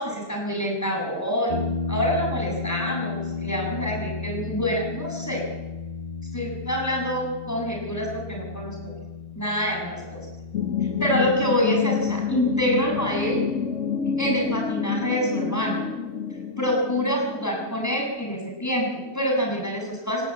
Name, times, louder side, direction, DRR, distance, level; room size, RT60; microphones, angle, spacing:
voice 1, 0.0-1.6 1.9-5.5 6.3-8.9 9.4-10.2 11.0-13.4 14.2-15.8 16.6-20.3, equal, 10° left, 0 dB, 7.3 m, -26 dB
sound 1, 1.5-14.6, left 5 dB, 35° left, 1.5 m, -35 dB
sound 2, 10.5-18.1, left 7 dB, 60° left, 1.3 m, -28 dB
28.0 x 16.0 x 8.7 m, 1.1 s
omnidirectional pair, 1.6 m